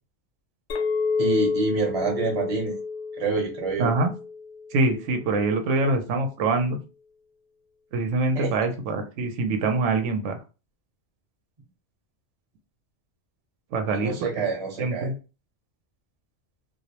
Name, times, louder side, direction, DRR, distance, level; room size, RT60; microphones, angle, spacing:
Chink clink, 0.7-5.2, left 4 dB, 85° left, 0.9 m, -29 dB
voice 1, 1.2-2.8 3.2-3.9 8.3-8.5 13.9-15.1, right 4 dB, 35° right, 1 dB, 0.7 m, -27 dB
voice 2, 3.8-4.1 4.7-6.8 7.9-10.4 13.7-14.5 14.8-15.1, right 3 dB, 90° right, 5 dB, 0.9 m, -24 dB
2.4 x 2.0 x 2.8 m, 0.32 s
omnidirectional pair, 1.2 m